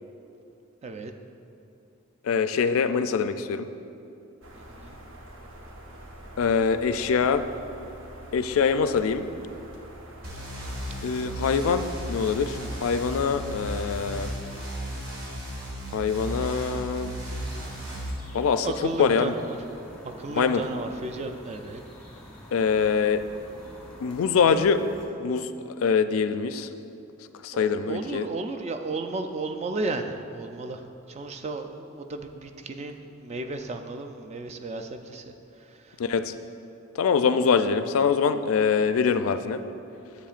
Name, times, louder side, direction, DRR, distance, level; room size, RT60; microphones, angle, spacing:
voice 1, 2.2-3.7 6.4-7.4 8.3-9.3 11.0-14.3 15.9-17.1 18.3-18.7 19.0-19.4 20.3-20.6 22.5-23.2 24.0-24.8 25.2-25.5 25.8-26.7 27.4-28.3 36.0-36.3 37.0-39.6, left 6 dB, 80° left, 10 dB, 0.4 m, -24 dB
sound 1, 4.4-14.3, right 1 dB, 65° right, 0.8 m, -45 dB
voice 2, 4.5-5.0 11.0-11.4 18.6-19.6 20.0-21.8 27.5-30.8 31.1-35.3, right 3 dB, 30° right, 6 dB, 0.4 m, -34 dB
sound 2, 10.2-18.1, equal, 90° right, 1.5 m, -35 dB
sound 3, 17.4-25.1, left 1 dB, 5° left, 1.3 m, -47 dB
10.0 x 7.6 x 2.5 m, 2.8 s
head